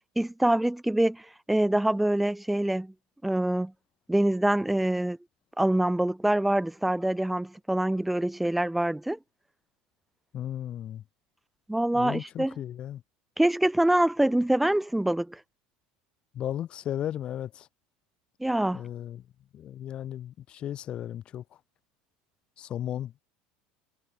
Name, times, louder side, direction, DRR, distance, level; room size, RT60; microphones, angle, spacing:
voice 1, 0.2-2.9 3.2-3.7 4.1-5.2 5.6-9.2 11.7-12.5 13.4-15.4 18.4-18.8, right 1 dB, 5° right, 0.5 m, -25 dB
voice 2, 10.3-11.0 11.9-13.0 16.3-17.7 18.7-19.2 19.5-21.4 22.6-23.2, left 11 dB, 30° left, 1.6 m, -35 dB
cardioid pair, 170°, 3 cm